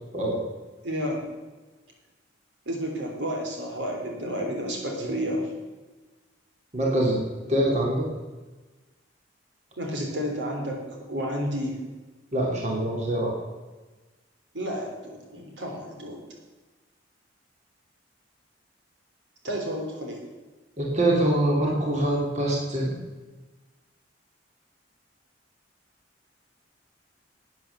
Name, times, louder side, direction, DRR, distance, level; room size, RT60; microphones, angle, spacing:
voice 1, 0.8-1.2 2.6-5.5 9.8-11.8 14.5-16.2 19.4-20.2, equal, 70° right, 1 dB, 3.4 m, -31 dB
voice 2, 6.7-7.2 7.5-8.1 12.3-13.3 20.8-22.9, right 1 dB, 40° right, -2 dB, 2.8 m, -24 dB
12.5 x 9.3 x 6.8 m, 1.2 s
head